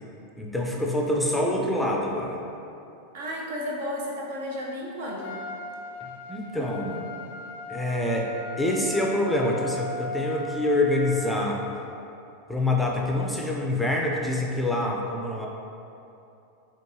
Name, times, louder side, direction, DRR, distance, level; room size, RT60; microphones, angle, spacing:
voice 1, 0.4-2.4 6.0-7.0 7.7-8.3 8.6-11.6 12.5-15.5, left 1 dB, 5° left, -1 dB, 0.5 m, -26 dB
voice 2, 3.1-5.4, equal, 65° right, -2 dB, 0.7 m, -33 dB
Trumpet, 5.2-11.7, left 3 dB, 70° left, 0.3 m, -37 dB
4.4 x 3.1 x 2.7 m, 2.7 s
hypercardioid pair, 95°, 0 cm